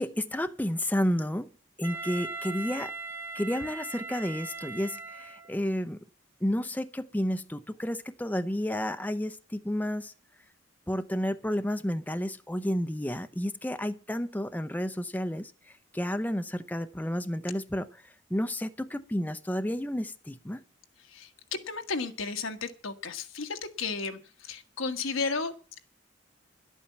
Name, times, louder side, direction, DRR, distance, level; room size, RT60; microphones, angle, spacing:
voice 1, 0.0-1.5 1.8-2.9 3.3-6.0 6.4-10.1 10.9-15.5 15.9-18.0 18.3-20.6, equal, 10° left, 10 dB, 0.5 m, -31 dB
Wind instrument woodwind instrument, 1.8-5.7, right 3 dB, 10° right, 0.9 m, -39 dB
voice 2, 21.1-25.5, left 4 dB, 85° left, 6 dB, 1.5 m, -33 dB
11.5 x 8.6 x 7.3 m, 0.39 s
head